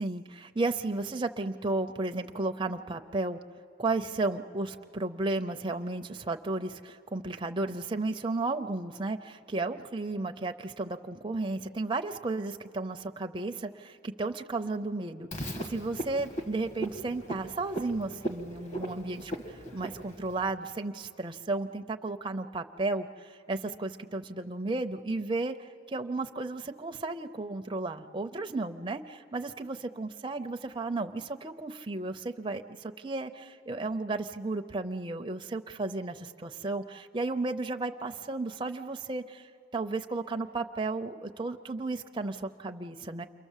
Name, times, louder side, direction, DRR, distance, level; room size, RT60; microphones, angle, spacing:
voice 1, 0.0-3.4 3.8-43.3, right 2 dB, 25° right, 5 dB, 0.5 m, -34 dB
Frog, 15.3-20.5, right 1 dB, 35° left, 1.5 m, -38 dB
28.5 x 23.5 x 7.3 m, 2.5 s
head